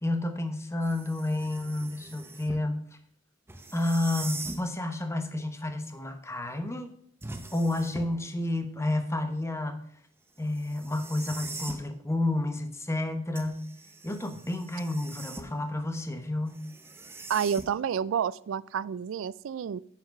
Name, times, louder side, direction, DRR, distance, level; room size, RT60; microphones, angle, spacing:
voice 1, 0.0-2.8 3.7-6.9 7.5-9.8 10.4-13.7 14.0-16.6, left 1 dB, 15° left, 7 dB, 1.0 m, -30 dB
sound 1, 0.8-2.7 3.5-4.7 7.2-8.3 10.5-11.9 13.4-15.7 16.5-18.0, right 3 dB, 10° right, 0.7 m, -42 dB
voice 2, 17.3-19.8, right 7 dB, 85° right, 20 dB, 0.3 m, -29 dB
9.7 x 5.9 x 5.3 m, 0.64 s
head